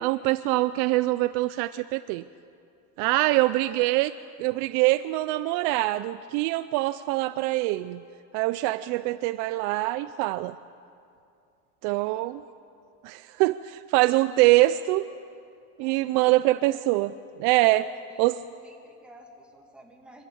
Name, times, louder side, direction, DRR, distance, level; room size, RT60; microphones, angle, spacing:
voice 1, 0.0-2.2 3.0-4.1 4.4-8.0 8.3-10.5 11.8-12.4 13.0-15.1 15.8-17.1 17.4-17.9 18.2-18.4, right 18 dB, 55° right, 14 dB, 0.5 m, -24 dB
voice 2, 3.5-4.0 15.8-16.9 17.7-18.2 18.6-20.2, right 1 dB, 5° right, 0 dB, 2.4 m, -52 dB
25.0 x 14.5 x 8.6 m, 2.5 s
cardioid pair, 150°, 36 cm